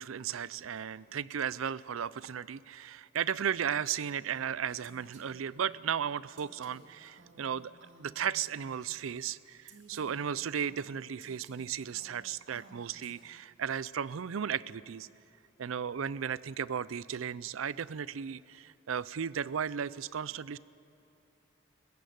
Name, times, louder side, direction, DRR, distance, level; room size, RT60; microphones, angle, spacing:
voice 1, 0.0-15.1 15.6-20.6, right 8 dB, 85° right, 19 dB, 0.5 m, -35 dB
Female speech woman speaking, 4.8-9.1 9.7-13.6, right 3 dB, 65° right, 2.3 m, -57 dB
21.0 x 15.0 x 9.4 m, 2.9 s
head